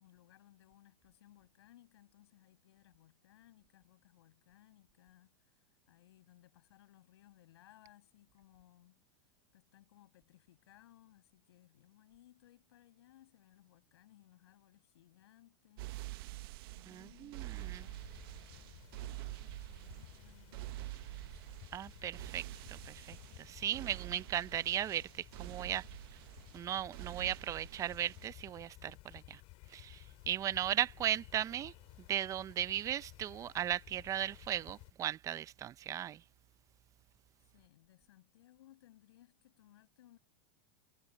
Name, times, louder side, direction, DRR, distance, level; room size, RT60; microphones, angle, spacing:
voice 1, 0.0-9.0 9.5-21.6 30.6-30.8 37.4-40.2, left 14 dB, 75° left, 6.1 m, -64 dB
sound 1, 15.8-28.3, right 20 dB, 60° right, 0.9 m, -47 dB
voice 2, 16.9-17.9 21.7-25.8 26.5-29.4 29.7-31.7 32.1-36.2, right 11 dB, 25° right, 0.5 m, -37 dB
sound 2, 17.5-34.9, left 23 dB, 45° left, 5.1 m, -56 dB
supercardioid pair, 140°, 14 cm